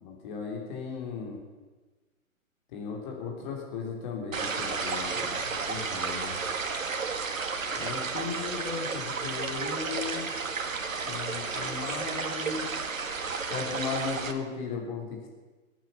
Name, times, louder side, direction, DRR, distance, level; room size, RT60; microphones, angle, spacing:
voice 1, 0.0-1.4 2.7-6.4 7.7-10.2 11.1-12.7 13.5-15.3, left 5 dB, 35° left, 0 dB, 3.5 m, -36 dB
sound 1, 4.3-14.3, right 4 dB, 65° right, 1.8 m, -32 dB
21.0 x 9.3 x 7.2 m, 1.3 s
figure-of-eight pair, 130°, 42 cm